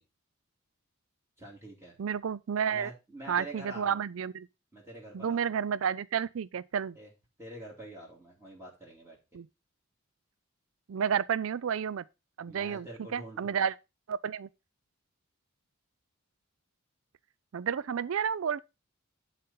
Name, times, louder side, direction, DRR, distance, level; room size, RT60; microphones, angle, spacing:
voice 1, 1.4-1.9 2.7-4.0 4.7-5.5 6.9-7.1 7.4-9.2 12.5-13.7, right 1 dB, 10° right, 2.8 m, -46 dB
voice 2, 2.0-2.9 3.3-4.5 5.1-7.0 9.3-9.5 10.9-12.0 12.4-12.9 13.1-13.7 14.1-14.5 17.5-18.6, right 7 dB, 75° right, 0.4 m, -31 dB
11.5 x 4.2 x 5.3 m
head